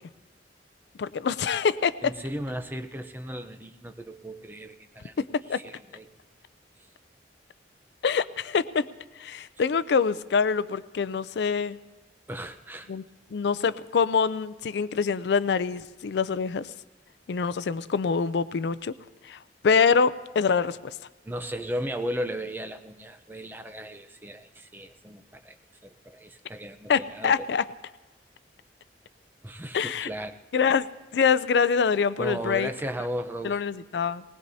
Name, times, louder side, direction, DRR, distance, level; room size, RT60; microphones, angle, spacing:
voice 1, 1.0-1.9 5.5-5.6 8.0-8.8 9.2-11.8 12.9-13.0 13.3-16.7 17.3-18.9 19.3-19.4 19.6-20.8 26.9-27.6 29.7-30.1 30.5-30.9 31.1-32.7 33.4-34.2, left 6 dB, 70° left, 16 dB, 0.4 m, -25 dB
voice 2, 2.0-6.1 12.3-12.9 21.2-25.6 25.8-27.4 29.4-30.4 32.2-33.6, equal, 10° right, 7 dB, 0.6 m, -36 dB
19.5 x 19.5 x 2.7 m, 1.2 s
head